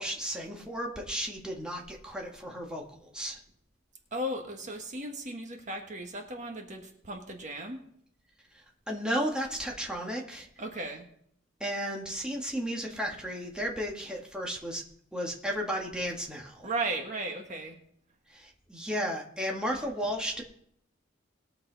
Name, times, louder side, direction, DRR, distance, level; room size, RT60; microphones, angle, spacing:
voice 1, 0.0-3.4 8.9-10.5 11.6-14.8 15.1-16.7 18.3-20.4, equal, 5° right, -1 dB, 1.7 m, -34 dB
voice 2, 4.1-7.8 10.6-11.1 16.6-17.8, right 1 dB, 40° right, 3 dB, 1.5 m, -36 dB
20.5 x 6.9 x 4.0 m, 0.68 s
head